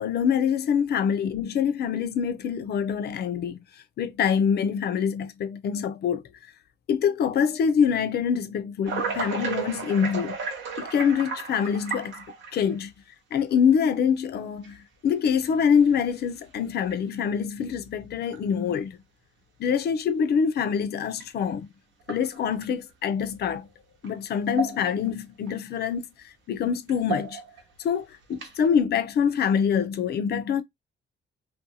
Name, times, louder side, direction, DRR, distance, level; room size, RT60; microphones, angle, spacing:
voice 1, 0.0-3.6 4.0-6.2 6.9-10.4 10.8-12.2 12.5-12.9 13.3-19.0 19.6-21.7 22.1-23.7 24.0-26.1 26.5-27.4 27.8-28.0 28.3-30.6, left 7 dB, 55° left, 0.4 m, -25 dB
sound 1, 8.9-12.7 13.5-13.6 14.6-14.7 15.5-15.8 16.2-16.3 16.8-16.9 18.3-18.4 21.2-21.3 22.0-22.7 24.0-24.1 24.5-25.1 25.5-25.6 26.9-27.6 28.3-28.7, right 5 dB, 75° right, 0.9 m, -33 dB
2.6 x 2.2 x 2.6 m
cardioid pair, 90°, 20 cm